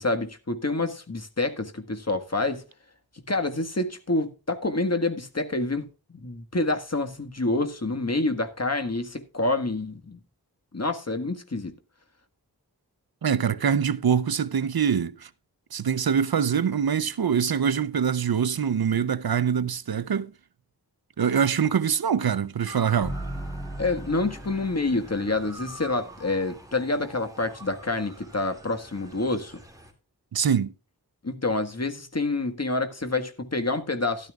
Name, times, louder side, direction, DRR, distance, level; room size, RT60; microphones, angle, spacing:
voice 1, 0.0-2.7 3.3-5.9 6.1-10.2 10.7-11.7 23.8-29.6 31.2-34.3, left 2 dB, 40° left, 1.7 m, -27 dB
voice 2, 13.2-15.3 15.7-20.3 21.2-23.2 30.3-30.7, right 7 dB, 70° right, 0.6 m, -24 dB
Motor vehicle (road) / Siren, 22.6-29.9, right 1 dB, 10° right, 2.4 m, -46 dB
sound 1, 23.0-27.1, right 1 dB, 10° left, 3.5 m, -38 dB
12.5 x 12.0 x 2.4 m
wide cardioid pair, 60°, 37 cm